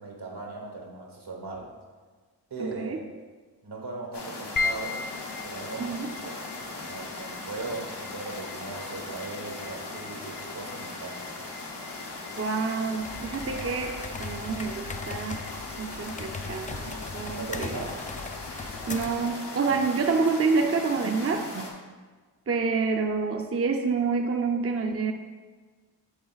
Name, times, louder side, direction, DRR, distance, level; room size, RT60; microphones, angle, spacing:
voice 1, 0.0-1.7 2.5-3.0 3.6-5.1 5.4-6.5 6.7-11.3 17.4-18.0 19.7-19.8, right 3 dB, 75° right, 0 dB, 1.4 m, -38 dB
voice 2, 2.6-3.0 5.8-6.1 12.4-15.4 15.8-17.7 18.9-21.7 22.5-25.1, right 4 dB, 35° right, 4 dB, 0.5 m, -28 dB
sound 1, 4.1-21.7, left 2 dB, 85° left, 1.2 m, -39 dB
sound 2, 4.6-19.0, left 4 dB, 55° left, 0.7 m, -40 dB
sound 3, 13.0-19.3, left 4 dB, 20° left, 0.3 m, -39 dB
8.0 x 4.1 x 4.0 m, 1.4 s
cardioid pair, 50°, 40 cm